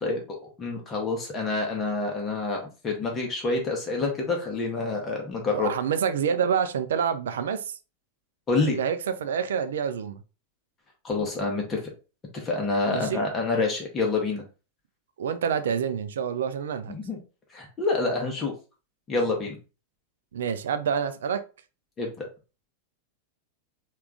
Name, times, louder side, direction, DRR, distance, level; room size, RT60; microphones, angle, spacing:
voice 1, 0.0-5.7 8.5-8.8 11.0-11.8 12.3-14.4 16.9-17.2 17.5-18.5 19.1-19.6 22.0-22.3, left 3 dB, 25° left, 0.9 m, -27 dB
voice 2, 5.5-7.8 8.6-10.2 12.9-13.2 15.2-16.9 20.3-21.4, right 7 dB, 60° right, 0.4 m, -27 dB
3.4 x 2.4 x 3.4 m
figure-of-eight pair, 90°, 0 cm